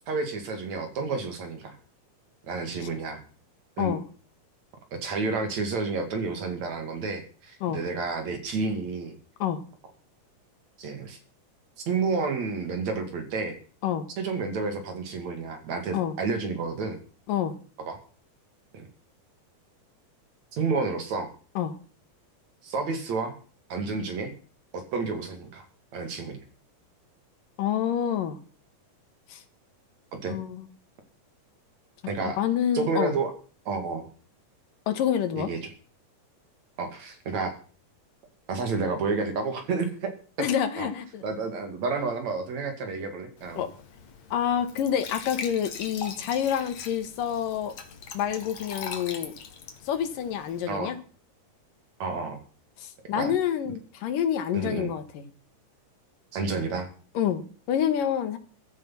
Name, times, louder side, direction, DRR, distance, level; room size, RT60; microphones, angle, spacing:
voice 1, 0.1-1.8 2.5-3.2 3.8-3.9 5.0-9.2 10.8-11.2 11.9-13.6 14.2-17.0 17.8-18.0 18.7-18.8 20.5-21.3 22.6-23.3 23.7-24.3 24.7-25.7 25.9-26.4 30.2-30.4 32.1-32.4 32.7-33.3 33.7-34.1 35.4-35.6 36.8-37.5 38.5-40.1 40.4-40.5 40.8-40.9 41.2-43.6 50.7-50.9 52.0-52.4 53.2-53.3 54.5-54.9 56.3-56.9, right 4 dB, 55° right, 6 dB, 3.7 m, -30 dB
voice 2, 27.6-28.4 29.3-29.4 30.3-30.7 32.4-33.1 34.9-35.5 40.4-41.2 43.6-43.7 44.3-47.7 48.1-49.3 49.9-51.0 52.8-55.3 57.1-58.4, left 9 dB, 75° left, 10 dB, 3.1 m, -27 dB
Glass / Trickle dribble / Fill (with liquid), 43.4-50.7, left 6 dB, 55° left, 2.9 m, -41 dB
14.5 x 13.0 x 5.8 m, 0.40 s
omnidirectional pair, 3.9 m